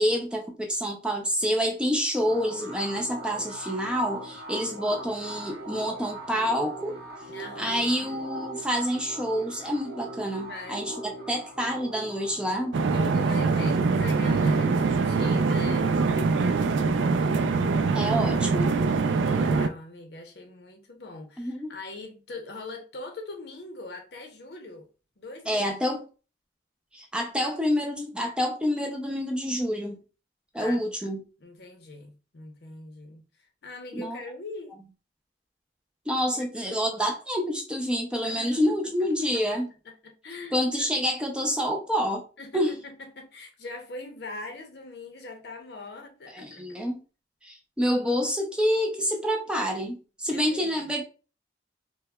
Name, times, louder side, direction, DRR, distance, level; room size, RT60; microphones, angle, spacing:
voice 1, 0.0-7.0 7.6-12.8 17.9-18.8 21.4-21.7 25.5-26.0 26.9-30.0 30.5-31.2 33.9-34.2 36.1-39.7 40.5-42.2 42.5-42.7 46.3-47.0 47.4-51.0, equal, 5° right, 0.4 m, -27 dB
sound 1, 2.2-15.4, right 2 dB, 60° right, 1.1 m, -41 dB
voice 2, 7.3-8.1 10.5-10.8 12.9-15.9 17.8-18.7 19.1-24.9 25.2-25.7 30.6-31.1 31.4-33.3 33.6-34.8 36.3-36.8 38.2-38.7 39.3-39.4 39.8-40.9 42.4-46.8 50.3-50.9, left 3 dB, 60° left, 0.7 m, -42 dB
sound 2, 12.7-19.7, right 4 dB, 80° right, 0.4 m, -23 dB
4.6 x 2.2 x 2.2 m
head